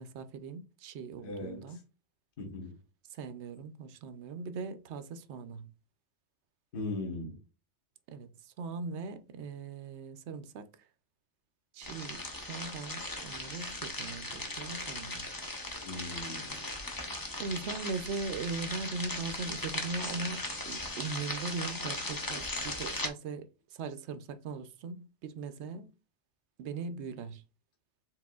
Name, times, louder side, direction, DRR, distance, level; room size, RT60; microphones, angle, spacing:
voice 1, 0.0-1.8 3.1-5.7 8.1-10.7 11.7-15.2 17.4-25.9 26.6-27.4, right 4 dB, 75° right, 0.8 m, -40 dB
voice 2, 1.2-1.8 2.4-2.8 6.7-7.4 15.8-16.7, left 2 dB, 50° left, 1.3 m, -39 dB
sound 1, 11.8-23.1, left 2 dB, 20° left, 0.7 m, -38 dB
4.7 x 3.7 x 2.3 m
omnidirectional pair, 1.2 m